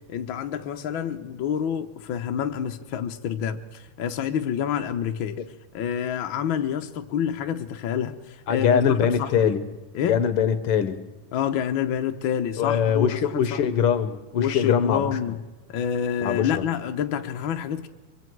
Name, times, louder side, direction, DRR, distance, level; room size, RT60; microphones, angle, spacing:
voice 1, 0.1-5.4 5.7-9.5 9.9-10.2 11.3-13.8 14.4-15.4 15.7-17.9, left 8 dB, 80° left, 1.1 m, -28 dB
voice 2, 8.5-9.6 10.1-11.0 12.6-15.2 16.2-16.6, left 7 dB, 65° left, 1.5 m, -22 dB
24.0 x 23.5 x 4.7 m
omnidirectional pair, 3.6 m